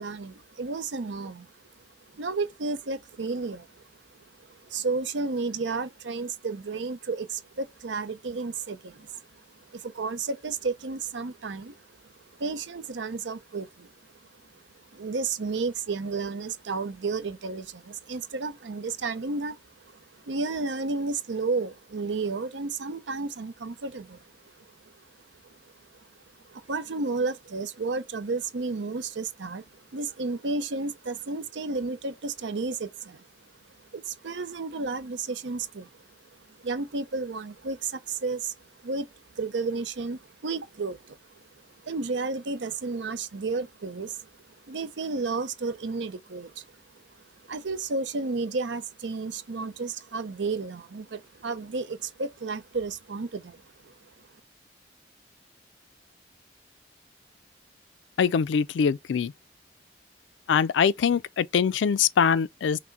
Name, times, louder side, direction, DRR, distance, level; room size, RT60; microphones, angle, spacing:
voice 1, 0.0-1.5 2.1-3.8 4.4-12.1 12.4-13.9 14.9-24.2 24.6-24.7 25.4-25.6 25.9-26.1 26.5-33.3 33.9-35.9 36.6-38.6 38.8-41.2 41.8-44.3 44.7-46.6 46.9-47.0 47.5-53.9, right 3 dB, 85° right, 0.6 m, -32 dB
voice 2, 58.2-59.3 60.5-62.8, left 7 dB, 90° left, 0.4 m, -23 dB
5.9 x 2.1 x 4.0 m
head